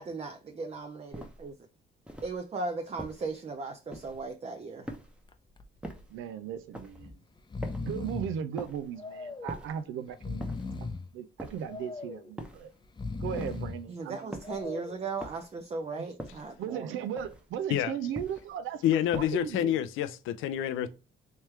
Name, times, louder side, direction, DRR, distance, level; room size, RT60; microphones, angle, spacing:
voice 1, 0.0-1.5 2.2-4.9 13.9-17.0, right 3 dB, 30° right, 0.5 m, -37 dB
sound 1, 1.1-1.5 2.0-2.4 3.0-3.4 3.9-4.3 4.8-5.3 5.8-6.2 6.7-7.1 7.6-8.0 8.6-8.9 9.5-9.9 10.4-10.8 11.4-11.8 12.4-12.8 13.4-13.8 14.3-14.7 15.2-15.6 16.2-16.6 17.2-17.6 18.1-18.6 19.1-19.5, equal, 5° right, 0.8 m, -43 dB
Breathing, 5.3-5.6 6.0-6.1 6.9-7.1 7.4-8.4 9.0-9.6 10.1-11.1 11.7-12.3 12.8-13.8 14.4-15.1, left 3 dB, 20° left, 0.5 m, -38 dB
voice 2, 6.1-7.2 7.8-10.4 10.8-10.9 11.1-12.7 13.2-14.4 14.6-14.8 16.0-16.1 16.6-18.8 19.1-19.8, right 8 dB, 85° right, 0.5 m, -37 dB
voice 3, 18.8-20.9, left 11 dB, 90° left, 0.5 m, -28 dB
3.3 x 3.2 x 3.1 m
cardioid pair, 90°, 20 cm